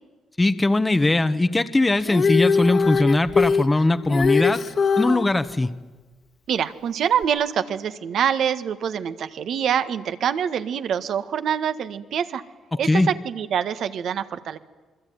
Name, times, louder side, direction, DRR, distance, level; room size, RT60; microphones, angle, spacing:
voice 1, 0.4-4.6 5.0-5.7 12.8-13.1, left 2 dB, 15° left, 10 dB, 1.1 m, -20 dB
Female singing, 2.0-5.3 7.2-7.3, left 5 dB, 50° left, 1.8 m, -21 dB
voice 2, 6.5-12.4 12.8-14.6, right 8 dB, 65° right, 11 dB, 1.5 m, -25 dB
27.0 x 22.0 x 9.4 m, 1.3 s
cardioid pair, 100°, 0 cm